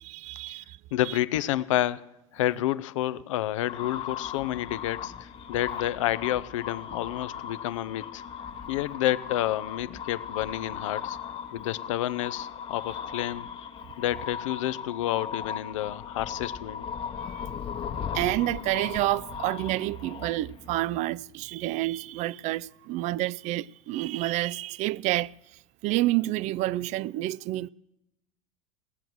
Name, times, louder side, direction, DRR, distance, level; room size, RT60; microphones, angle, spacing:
voice 1, 0.0-0.8 1.1-1.2 17.2-17.6 18.1-25.3 25.8-27.7, right 17 dB, 45° right, 0.4 m, -29 dB
voice 2, 0.9-2.0 2.3-8.2 8.7-11.2 11.5-13.5 14.0-16.9, left 14 dB, 75° left, 0.6 m, -29 dB
sound 1, 3.6-20.7, left 8 dB, 35° left, 1.0 m, -38 dB
18.5 x 7.8 x 6.1 m
hypercardioid pair, 85°, 16 cm